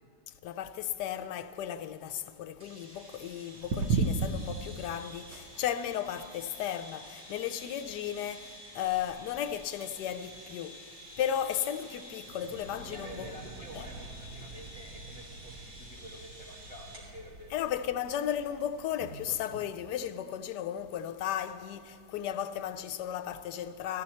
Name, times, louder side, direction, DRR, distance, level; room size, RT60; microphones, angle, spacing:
voice 1, 0.3-10.8 11.2-13.3 13.7-13.9 17.5-24.0, left 10 dB, 75° left, 1.1 m, -35 dB
sound 1, 2.6-17.1, equal, 30° right, 3.1 m, -50 dB
Kitchen atmos with clicky sunflower, 3.6-19.7, right 4 dB, 90° right, 1.5 m, -40 dB
sound 2, 12.2-19.7, right 3 dB, 65° right, 1.1 m, -49 dB
voice 2, 12.9-17.6, equal, 20° left, 1.5 m, -49 dB
15.5 x 13.5 x 4.2 m
omnidirectional pair, 1.9 m